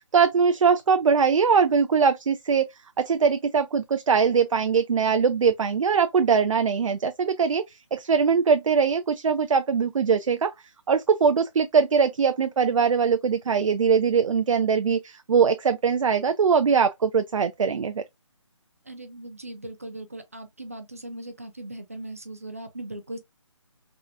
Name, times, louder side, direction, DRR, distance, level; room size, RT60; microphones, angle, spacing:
voice 1, 0.1-2.7 3.0-10.5 10.9-18.0, right 6 dB, 90° right, 0.4 m, -21 dB
voice 2, 18.9-23.2, right 1 dB, 30° right, 0.4 m, -39 dB
3.6 x 2.2 x 2.5 m
hypercardioid pair, 180°, 16 cm